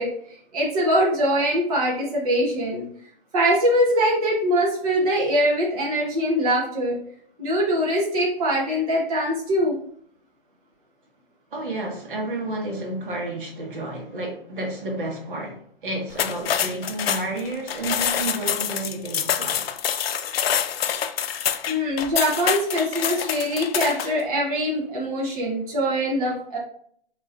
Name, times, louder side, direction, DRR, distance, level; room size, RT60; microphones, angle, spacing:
voice 1, 0.0-2.9 3.3-7.0 7.4-9.8 21.7-26.6, equal, 40° right, -4 dB, 1.1 m, -23 dB
voice 2, 11.5-19.7, right 2 dB, 60° right, 0 dB, 1.4 m, -31 dB
sound 1, 16.1-24.2, left 9 dB, 80° left, 0.5 m, -26 dB
5.4 x 3.0 x 2.5 m, 0.62 s
hypercardioid pair, 170°, 30 cm